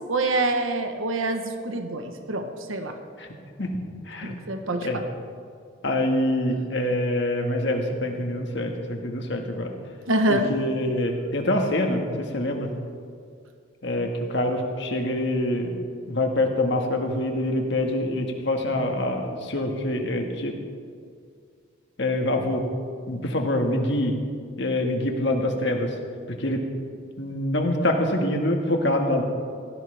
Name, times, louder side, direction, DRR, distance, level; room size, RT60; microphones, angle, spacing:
voice 1, 0.1-2.9 4.2-5.1 10.1-10.5, right 2 dB, 90° right, 5 dB, 1.1 m, -26 dB
voice 2, 5.8-9.7 10.3-12.7 13.8-15.8 16.1-20.5 22.0-22.6 23.1-24.2 24.6-25.9 26.3-26.6 27.2-29.2, left 1 dB, 60° left, 2 dB, 1.7 m, -25 dB
18.0 x 15.0 x 3.5 m, 2.2 s
head